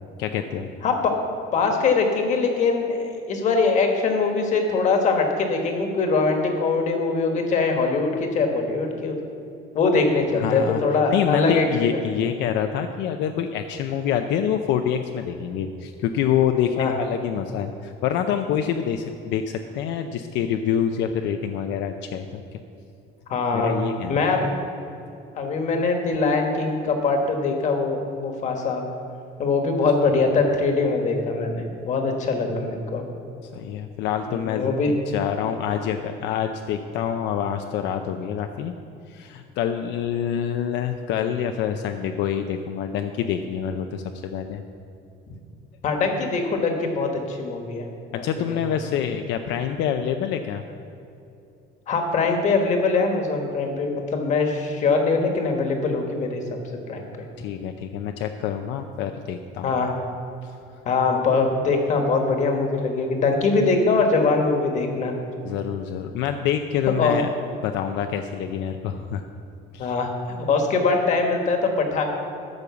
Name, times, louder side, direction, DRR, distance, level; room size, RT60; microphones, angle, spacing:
voice 1, 0.2-0.7 10.4-10.8 11.1-22.6 23.5-24.2 33.4-38.7 39.1-44.6 48.1-50.6 57.4-59.7 60.4-60.5 65.4-67.3 67.6-69.3 69.7-69.9, left 9 dB, 70° left, 6 dB, 0.6 m, -26 dB
voice 2, 0.8-1.1 1.5-9.2 9.7-11.7 11.9-12.0 16.8-16.9 23.3-23.8 24.1-24.5 25.4-28.8 29.4-33.0 34.3-34.9 45.8-47.9 48.1-48.2 48.5-48.6 51.9-56.4 56.9-57.1 59.6-59.9 60.8-65.1 67.0-67.2 69.8-70.1 70.5-72.0, left 4 dB, 40° left, 3 dB, 1.4 m, -22 dB
13.0 x 5.4 x 7.0 m, 2.7 s
cardioid pair, 175°, 19 cm